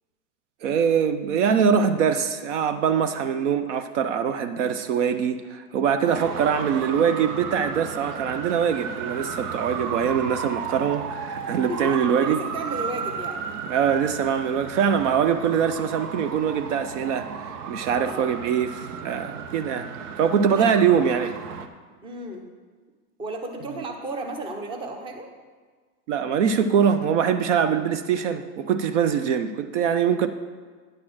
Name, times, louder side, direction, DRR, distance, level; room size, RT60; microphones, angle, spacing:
voice 1, 0.6-12.4 13.7-19.9 20.2-21.3 26.1-30.3, right 7 dB, 55° right, 11 dB, 0.5 m, -23 dB
Traffic noise roadway noise, 6.1-21.7, right 6 dB, 80° right, 0.9 m, -34 dB
voice 2, 11.7-13.4 18.0-18.3 20.5-20.8 22.0-22.4 23.2-25.3, right 2 dB, 10° right, 4 dB, 0.6 m, -34 dB
9.7 x 4.2 x 7.5 m, 1.5 s
hypercardioid pair, 135°, 45 cm